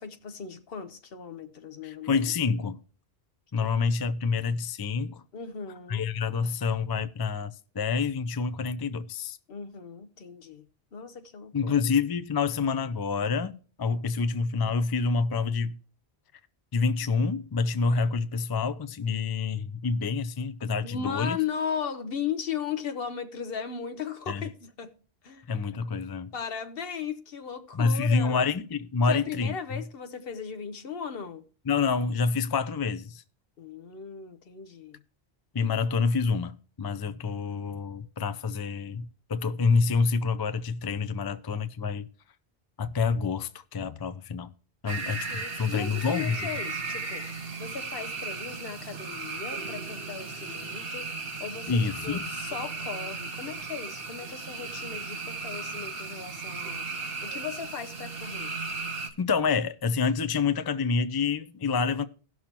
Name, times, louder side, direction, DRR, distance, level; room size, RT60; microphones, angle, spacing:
voice 1, 0.0-2.2 3.6-3.7 5.3-6.0 9.5-10.7 10.9-11.7 20.8-25.0 25.2-25.5 26.3-28.5 29.1-31.4 33.6-35.0 44.8-47.3 47.6-51.1 51.4-56.9 57.2-58.6, left 7 dB, 70° left, 1.0 m, -37 dB
voice 2, 1.8-2.8 3.5-5.2 5.9-9.4 11.5-15.8 16.7-21.4 24.3-24.5 25.5-26.3 27.7-29.5 31.7-33.2 35.5-42.1 42.8-44.5 44.8-46.5 51.7-52.3 59.2-62.0, left 5 dB, 35° left, 0.4 m, -27 dB
sound 1, 44.9-59.1, right 4 dB, 65° right, 1.4 m, -36 dB
17.5 x 6.2 x 2.9 m
omnidirectional pair, 1.0 m